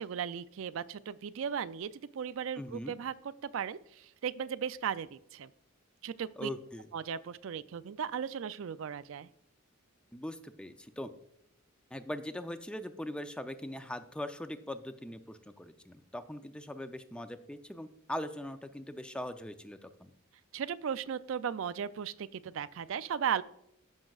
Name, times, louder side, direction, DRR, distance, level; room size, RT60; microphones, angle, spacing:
voice 1, 0.0-5.5 6.0-6.5 6.9-9.3 20.5-23.4, right 8 dB, 65° right, 15 dB, 0.4 m, -36 dB
voice 2, 2.6-3.0 6.4-6.9 10.1-11.1 11.9-20.1, left 1 dB, 5° left, 9 dB, 0.4 m, -41 dB
15.0 x 6.3 x 2.4 m, 0.81 s
head